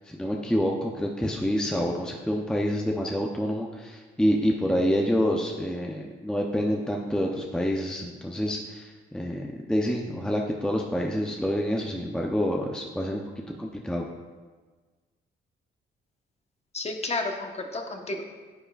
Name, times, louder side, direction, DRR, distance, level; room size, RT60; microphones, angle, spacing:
voice 1, 0.1-13.2 13.6-14.1, equal, 5° left, 0 dB, 0.7 m, -27 dB
voice 2, 16.7-18.2, left 2 dB, 30° left, 3 dB, 1.2 m, -31 dB
9.8 x 8.6 x 2.4 m, 1.4 s
cardioid pair, 90°, 20 cm